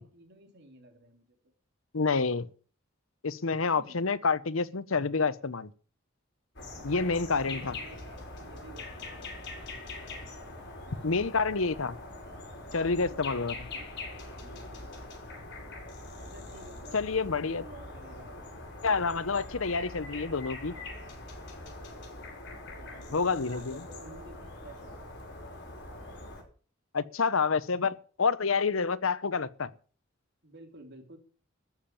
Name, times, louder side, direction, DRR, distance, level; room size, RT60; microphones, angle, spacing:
voice 1, 0.0-1.4 3.7-4.0 6.6-9.6 12.7-13.2 13.7-13.9 14.2-15.0 16.1-17.0 17.5-18.5 22.2-22.3 22.7-25.1 30.4-31.2, right 2 dB, 55° right, 3.6 m, -52 dB
voice 2, 1.9-2.5 3.2-5.7 6.8-7.7 11.0-12.0 12.7-13.5 16.9-17.6 18.8-20.7 23.1-23.8 26.9-29.7, left 4 dB, 85° left, 0.9 m, -28 dB
sound 1, 6.6-26.4, left 2 dB, 60° left, 5.4 m, -43 dB
14.0 x 7.4 x 9.0 m
head